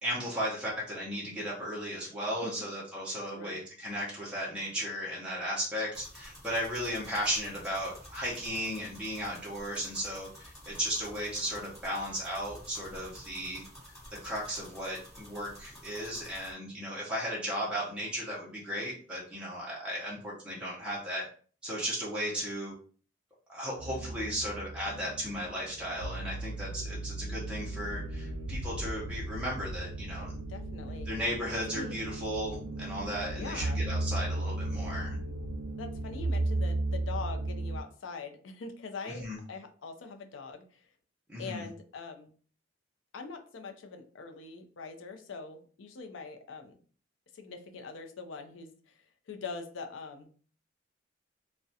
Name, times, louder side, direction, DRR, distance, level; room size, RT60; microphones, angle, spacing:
voice 1, 0.0-10.3 10.7-13.6 14.2-21.3 21.6-22.7 23.5-30.3 31.0-35.2 39.0-39.4 41.3-41.6, equal, 5° right, -7 dB, 0.6 m, -35 dB
voice 2, 3.3-3.6 30.5-31.1 31.7-31.9 33.3-33.8 35.8-40.6 41.4-42.3 43.1-46.8 47.3-48.9 49.3-50.3, left 4 dB, 90° left, 5 dB, 0.4 m, -43 dB
sound 1, 5.9-16.5, equal, 15° left, 1.0 m, -51 dB
sound 2, 23.8-37.8, right 2 dB, 75° right, 0.3 m, -35 dB
2.3 x 2.1 x 2.6 m, 0.42 s
head